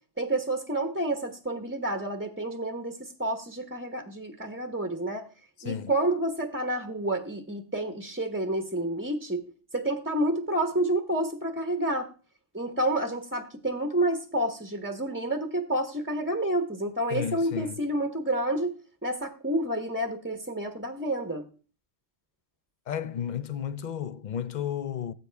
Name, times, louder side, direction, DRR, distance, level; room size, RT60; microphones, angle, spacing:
voice 1, 0.2-5.3 5.6-9.4 9.7-12.1 12.5-18.7 19.0-21.4, right 1 dB, 10° right, 0.8 m, -29 dB
voice 2, 17.1-17.8 22.9-25.1, left 9 dB, 50° left, 0.6 m, -32 dB
18.0 x 8.2 x 3.4 m
omnidirectional pair, 1.3 m